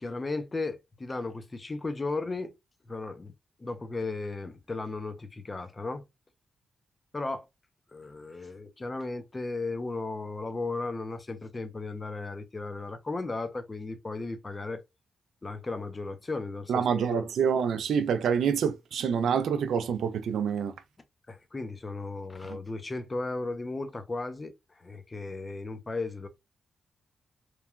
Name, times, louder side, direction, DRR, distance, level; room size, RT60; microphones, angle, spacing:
voice 1, 0.0-2.5 2.9-3.3 3.6-6.0 7.1-7.5 7.9-14.8 15.4-17.3 21.3-26.3, left 3 dB, 25° left, 0.5 m, -35 dB
voice 2, 16.7-20.7 22.5-22.6, right 7 dB, 85° right, 0.3 m, -27 dB
2.9 x 2.2 x 2.3 m
wide cardioid pair, 120°, 0 cm